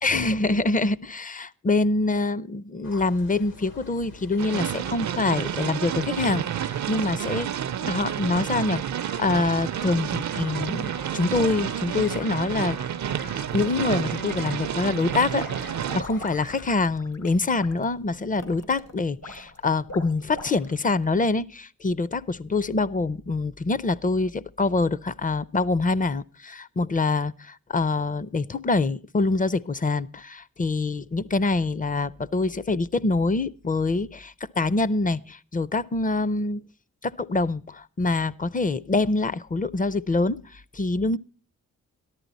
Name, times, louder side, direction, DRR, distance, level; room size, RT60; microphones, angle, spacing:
voice 1, 0.0-7.5 7.8-8.8 9.2-12.8 13.5-36.6 37.0-41.2, left 3 dB, 25° left, 0.5 m, -25 dB
sound 1, 2.8-16.8, left 3 dB, 85° left, 2.5 m, -45 dB
sound 2, 4.4-16.0, right 10 dB, 65° right, 0.5 m, -30 dB
sound 3, 13.0-13.8 14.2-20.9, equal, 70° left, 2.8 m, -42 dB
13.5 x 11.5 x 4.0 m
cardioid pair, 60°, 32 cm